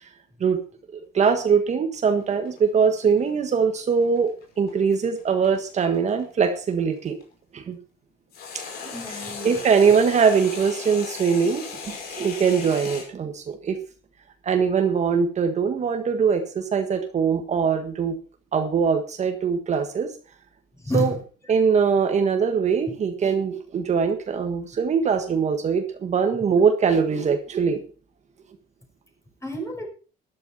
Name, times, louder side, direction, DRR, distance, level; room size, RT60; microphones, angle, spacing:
voice 1, 0.9-7.2 7.5-7.8 8.8-8.9 9.4-13.8 14.4-18.1 18.5-20.1 20.9-21.1 21.5-27.8, right 6 dB, 45° right, 6 dB, 1.6 m, -22 dB
sound 1, 2.0-7.2 8.3-13.1, left 5 dB, 65° left, 5.4 m, -37 dB
voice 2, 8.9-9.9 20.8-21.2 29.4-29.9, left 1 dB, 15° left, 2 dB, 5.4 m, -30 dB
13.0 x 11.5 x 4.3 m, 0.36 s
cardioid pair, 110°, 17 cm